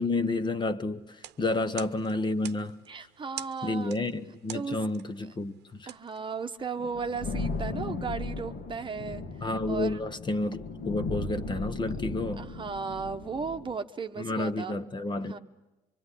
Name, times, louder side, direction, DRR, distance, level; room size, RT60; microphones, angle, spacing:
voice 1, 0.0-2.8 3.6-5.9 9.4-12.4 14.2-15.4, left 2 dB, 25° left, 1.1 m, -30 dB
sound 1, 1.1-6.9, right 13 dB, 80° right, 1.0 m, -47 dB
voice 2, 2.9-3.9 4.5-4.8 5.9-9.2 9.7-10.0 12.4-14.8 15.2-15.4, right 5 dB, 30° right, 1.1 m, -35 dB
sound 2, 6.8-13.7, left 3 dB, 65° left, 2.0 m, -36 dB
24.5 x 24.5 x 10.0 m
cardioid pair, 110°, 17 cm